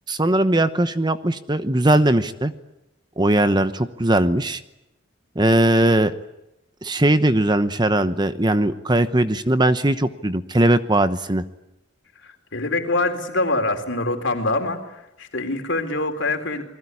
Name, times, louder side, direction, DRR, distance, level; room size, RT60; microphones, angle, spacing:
voice 1, 0.1-2.5 3.2-4.6 5.4-6.1 6.8-11.4, right 1 dB, 20° right, 11 dB, 1.0 m, -19 dB
voice 2, 12.2-16.6, left 2 dB, 60° left, 6 dB, 3.9 m, -25 dB
28.5 x 21.0 x 9.7 m, 0.89 s
head